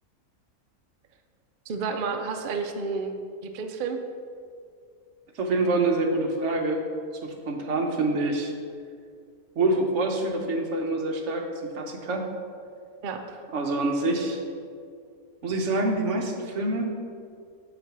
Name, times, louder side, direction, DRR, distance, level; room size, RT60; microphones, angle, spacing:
voice 1, 1.7-3.1 3.5-4.0 13.0-13.4, right 5 dB, 70° right, 5 dB, 0.4 m, -30 dB
voice 2, 5.3-6.8 7.2-8.5 9.6-11.5 11.7-12.3 13.5-14.4 15.4-16.9, right 2 dB, 55° right, 2 dB, 1.1 m, -26 dB
7.3 x 4.2 x 6.0 m, 2.2 s
omnidirectional pair, 1.6 m